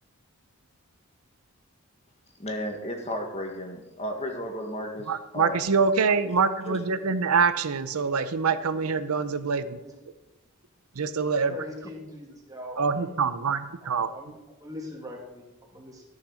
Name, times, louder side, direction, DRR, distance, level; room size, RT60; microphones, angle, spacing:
voice 1, 2.4-5.7 6.7-6.8, equal, 30° left, 2 dB, 1.8 m, -33 dB
voice 2, 5.1-9.8 11.0-11.5 12.8-14.1, right 5 dB, 85° right, 12 dB, 0.7 m, -25 dB
voice 3, 11.5-13.1 13.5-16.0, left 1 dB, 15° right, -1 dB, 2.3 m, -42 dB
13.0 x 6.6 x 6.3 m, 1.0 s
head